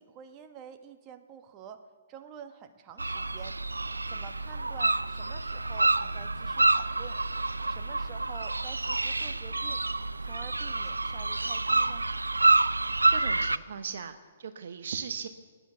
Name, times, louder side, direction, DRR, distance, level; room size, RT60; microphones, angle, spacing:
voice 1, 0.0-1.8 2.1-3.5 4.1-7.2 7.7-9.8 10.2-12.1, right 8 dB, 30° right, 7 dB, 1.3 m, -48 dB
sound 1, 3.0-13.6, right 2 dB, 85° right, 0.4 m, -28 dB
voice 2, 13.1-15.3, right 6 dB, 60° right, 9 dB, 0.9 m, -38 dB
16.5 x 10.0 x 8.2 m, 1.5 s
figure-of-eight pair, 125°, 0 cm